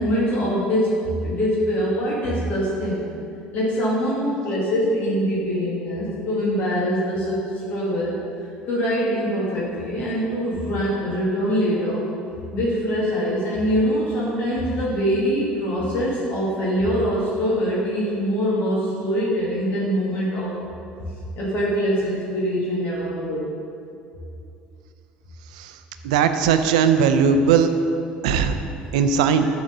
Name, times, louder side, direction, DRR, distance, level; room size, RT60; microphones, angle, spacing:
voice 1, 0.0-3.0 3.5-8.1 8.7-12.0 12.5-20.5 21.0-21.1 21.4-23.5 29.4-29.5, equal, 55° left, -7 dB, 1.7 m, -23 dB
voice 2, 26.0-27.7 28.2-28.5 28.9-29.5, right 7 dB, 90° right, 8 dB, 0.4 m, -18 dB
7.2 x 3.9 x 6.5 m, 2.5 s
supercardioid pair, 85°, 4 cm